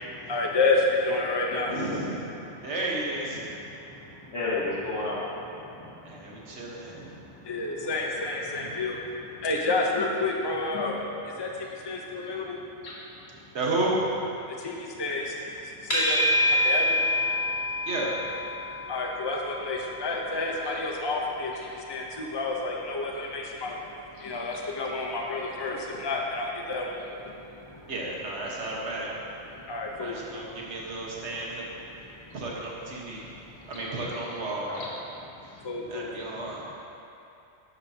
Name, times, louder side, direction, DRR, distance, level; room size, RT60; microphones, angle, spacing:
voice 1, 0.1-1.7 3.9-4.0 5.6-6.5 7.4-9.1 9.4-12.6 14.6-16.2 16.6-17.0 18.9-23.8 24.2-26.9 27.3-27.4 29.7-30.2 35.6-36.1, left 3 dB, 20° left, -1 dB, 0.8 m, -30 dB
voice 2, 1.7-2.3 2.6-3.6 6.1-7.2 8.5-8.8 13.5-14.0 17.9-18.3 27.9-29.1 30.0-31.6 31.9-32.1 32.3-33.3 33.7-34.9 35.4-35.6 35.9-36.6, right 2 dB, 55° right, -4 dB, 1.8 m, -32 dB
voice 3, 4.3-5.2 8.2-8.6 12.8-13.0 20.6-20.8 21.6-21.7 24.2-24.6 25.7-25.8 34.7-34.9, left 3 dB, 65° left, -6 dB, 2.2 m, -33 dB
sound 1, 15.9-33.1, left 1 dB, 50° left, 2.8 m, -33 dB
12.0 x 12.0 x 2.9 m, 2.8 s
omnidirectional pair, 1.4 m